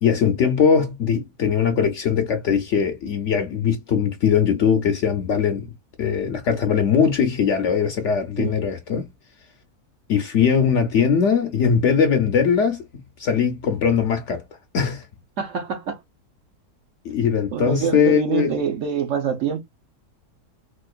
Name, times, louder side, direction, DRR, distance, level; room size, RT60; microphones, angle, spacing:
voice 1, 0.0-5.7 6.0-9.1 10.1-12.8 13.2-14.4 14.7-15.1 17.0-18.6, left 7 dB, 65° left, 0.8 m, -20 dB
voice 2, 15.4-16.0 17.5-19.6, right 7 dB, 60° right, 1.0 m, -25 dB
4.3 x 2.4 x 2.3 m
omnidirectional pair, 1.7 m